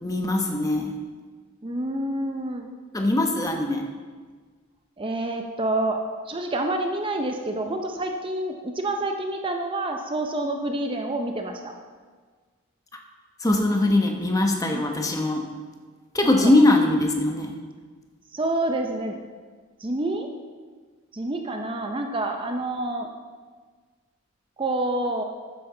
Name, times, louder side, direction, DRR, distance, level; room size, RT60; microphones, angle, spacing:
voice 1, 0.0-0.9 2.9-3.8 13.4-15.4 16.1-17.5, left 2 dB, 15° left, 3 dB, 1.0 m, -21 dB
voice 2, 1.6-2.7 5.0-6.0 6.2-11.7 14.7-14.8 16.2-16.5 18.3-19.2 19.8-20.3 21.1-23.1 24.6-25.2, right 2 dB, 25° right, 4 dB, 0.6 m, -28 dB
12.5 x 9.7 x 3.9 m, 1.5 s
head